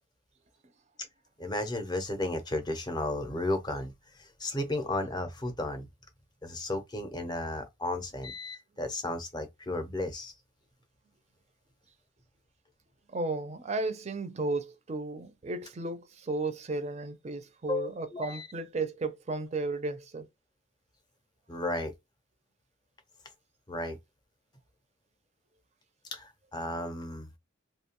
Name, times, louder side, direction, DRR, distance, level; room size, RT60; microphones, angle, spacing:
voice 1, 1.4-3.9 4.2-5.9 6.4-10.3 17.7-18.5 21.5-21.9 23.7-24.0 26.1-27.3, left 2 dB, 20° left, 0.6 m, -34 dB
voice 2, 13.1-20.3, right 3 dB, 35° right, 0.4 m, -34 dB
2.7 x 2.2 x 2.8 m
head